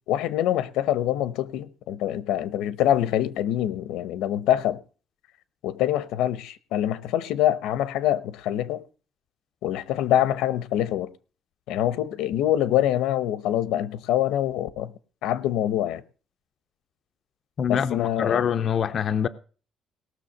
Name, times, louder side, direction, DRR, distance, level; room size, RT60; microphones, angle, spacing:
voice 1, 0.1-4.8 5.6-8.8 9.6-11.1 11.7-14.9 15.2-16.0 17.7-18.4, left 12 dB, 80° left, 0.8 m, -25 dB
voice 2, 17.6-19.3, left 8 dB, 35° left, 0.5 m, -24 dB
18.5 x 6.5 x 6.5 m
cardioid pair, 175°, 0 cm